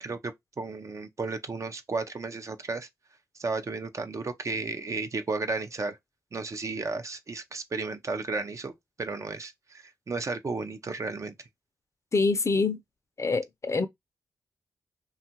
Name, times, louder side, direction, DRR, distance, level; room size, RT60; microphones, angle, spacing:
voice 1, 0.0-2.9 3.3-6.0 6.3-8.7 9.0-11.3, right 3 dB, 45° right, 0.5 m, -33 dB
voice 2, 12.1-12.8 13.2-13.9, left 3 dB, 40° left, 0.5 m, -25 dB
2.8 x 2.4 x 2.8 m
cardioid pair, 50°, 8 cm